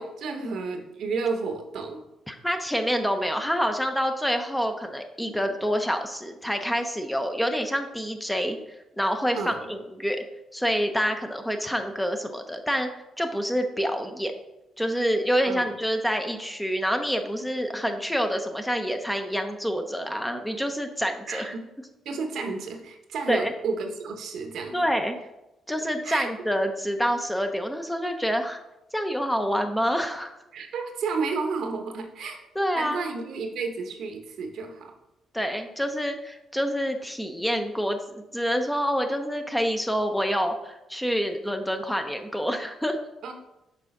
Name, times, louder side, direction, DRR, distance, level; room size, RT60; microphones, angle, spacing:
voice 1, 0.0-2.0 9.3-9.6 15.5-15.7 21.3-21.6 22.0-24.9 26.0-26.3 30.5-32.4 32.7-34.9 43.2-43.3, right 4 dB, 70° right, 5 dB, 0.9 m, -31 dB
voice 2, 2.3-8.6 9.0-10.2 10.5-12.9 13.2-14.3 14.8-21.5 22.4-22.5 23.3-23.5 24.7-25.2 25.7-28.6 28.9-30.3 32.5-33.0 35.3-43.0, equal, 5° left, 5 dB, 0.6 m, -27 dB
6.0 x 3.3 x 5.3 m, 0.92 s
cardioid pair, 90°, 0 cm